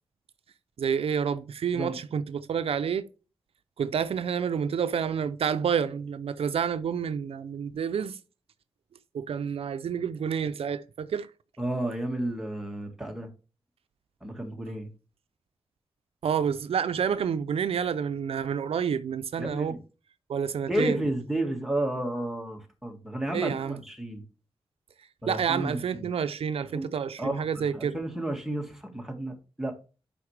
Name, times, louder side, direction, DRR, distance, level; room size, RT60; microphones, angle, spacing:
voice 1, 0.8-3.1 3.8-8.2 9.1-11.3 16.2-19.7 20.3-21.0 23.3-23.8 25.3-28.0, right 7 dB, 80° right, 0.4 m, -29 dB
voice 2, 11.6-13.3 14.2-14.9 19.4-19.8 20.7-24.2 25.2-26.1 26.7-26.9 27.2-29.7, right 1 dB, 5° right, 1.7 m, -32 dB
8.4 x 5.2 x 3.3 m
wide cardioid pair, 75°, 10 cm